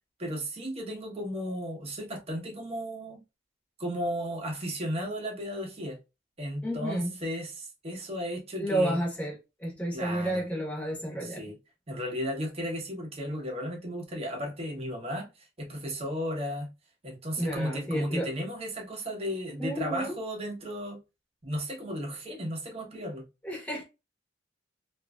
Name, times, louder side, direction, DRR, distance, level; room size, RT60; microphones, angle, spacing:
voice 1, 0.2-3.2 3.8-6.0 6.4-9.0 9.9-10.4 11.2-11.6 11.9-15.3 15.6-16.7 17.0-21.0 21.4-23.2, equal, 35° right, 1.0 m, -34 dB
voice 2, 6.6-7.2 8.6-11.4 17.4-18.3 19.6-20.2 23.4-23.8, right 1 dB, 5° left, 1.1 m, -31 dB
3.0 x 2.5 x 2.3 m
head